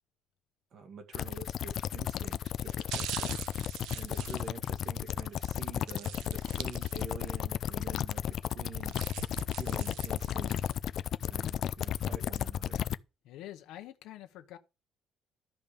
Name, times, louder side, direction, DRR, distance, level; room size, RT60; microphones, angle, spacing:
voice 1, 0.7-3.4 3.9-9.0 9.5-10.7 11.2-12.8, right 4 dB, 50° right, 2.2 m, -47 dB
sound 1, 1.1-13.0, left 10 dB, 50° left, 0.5 m, -34 dB
sound 2, 1.7-2.0 2.6-5.2 5.9-7.3 7.7-7.8 8.6-10.8 11.2-11.3, right 12 dB, 80° right, 0.7 m, -43 dB
voice 2, 13.2-14.6, left 13 dB, 80° left, 1.1 m, -46 dB
12.5 x 5.3 x 6.9 m
cardioid pair, 145°, 0 cm